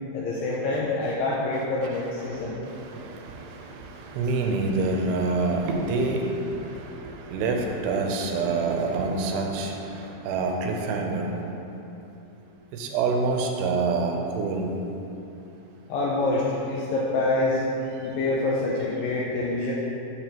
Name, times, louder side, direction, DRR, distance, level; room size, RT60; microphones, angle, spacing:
voice 1, 0.1-2.6 15.9-17.7 18.0-19.7, left 2 dB, 85° left, -4 dB, 2.1 m, -26 dB
voice 2, 2.2-11.4 12.7-14.7, right 3 dB, 90° right, 2 dB, 2.7 m, -27 dB
6.8 x 6.5 x 2.9 m, 2.9 s
omnidirectional pair, 4.6 m